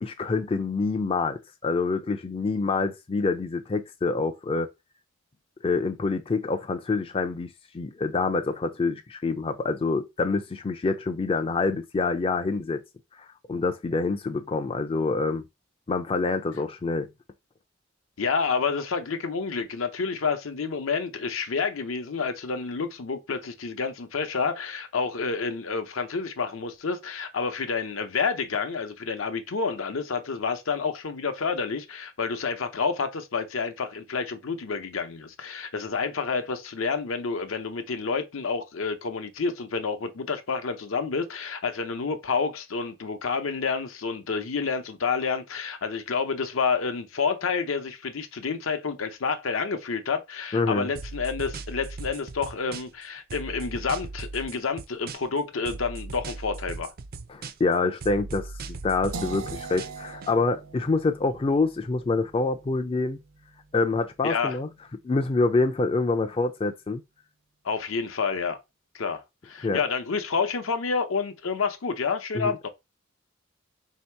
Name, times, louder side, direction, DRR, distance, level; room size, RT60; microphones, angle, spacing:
voice 1, 0.0-4.7 5.6-12.8 13.5-15.5 15.9-17.1 50.5-50.9 57.3-63.2 63.7-64.7 65.0-67.0 69.6-69.8 72.3-72.5, left 3 dB, 30° left, 0.4 m, -26 dB
voice 2, 18.2-56.9 64.2-64.6 67.6-68.6 68.9-72.7, left 5 dB, 75° left, 0.7 m, -29 dB
sound 1, 51.0-53.0 53.3-55.4 55.7-57.7 58.0-60.3, right 3 dB, 45° right, 0.4 m, -38 dB
sound 2, 59.1-65.0, right 4 dB, 85° right, 0.7 m, -43 dB
3.6 x 2.8 x 4.4 m
head